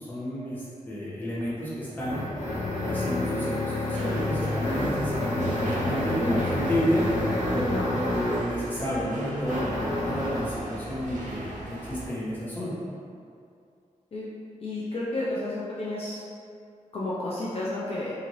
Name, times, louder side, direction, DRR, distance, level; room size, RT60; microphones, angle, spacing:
voice 1, 0.0-2.2 2.8-7.0 7.5-12.8, equal, 15° left, -9 dB, 0.8 m, -31 dB
sound 1, 1.3-8.6 9.4-10.6, left 1 dB, 70° left, 0.9 m, -29 dB
sound 2, 3.9-12.1, right 1 dB, 75° right, 0.5 m, -38 dB
voice 2, 14.6-16.2 16.9-18.1, left 2 dB, 50° left, -7 dB, 0.4 m, -31 dB
3.0 x 2.5 x 2.7 m, 2.4 s
wide cardioid pair, 130°, 13 cm